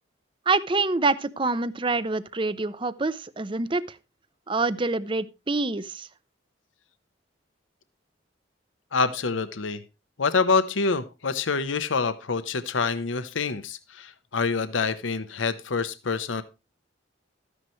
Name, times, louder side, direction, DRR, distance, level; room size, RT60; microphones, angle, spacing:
voice 1, 0.5-4.0 4.5-6.1, right 3 dB, 25° right, 0.5 m, -26 dB
voice 2, 8.9-9.8 10.2-16.4, left 4 dB, 90° left, 0.9 m, -26 dB
13.5 x 9.9 x 3.1 m
head